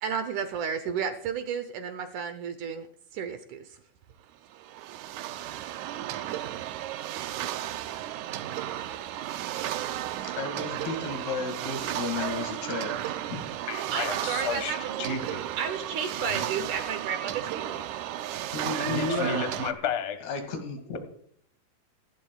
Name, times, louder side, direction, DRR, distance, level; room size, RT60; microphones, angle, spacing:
voice 1, 0.0-2.9 3.1-3.8 13.9-15.3 15.6-17.9, right 7 dB, 70° right, 9 dB, 2.0 m, -32 dB
sound 1, 4.5-19.7, right 12 dB, 85° right, 1.7 m, -34 dB
voice 2, 10.2-13.5 18.5-19.5 20.2-21.0, left 4 dB, 85° left, 5 dB, 4.2 m, -33 dB
voice 3, 13.7-15.4 16.2-16.4 18.2-18.3 18.8-20.2, left 4 dB, 70° left, 7 dB, 0.6 m, -32 dB
26.0 x 12.0 x 2.4 m, 0.64 s
omnidirectional pair, 4.3 m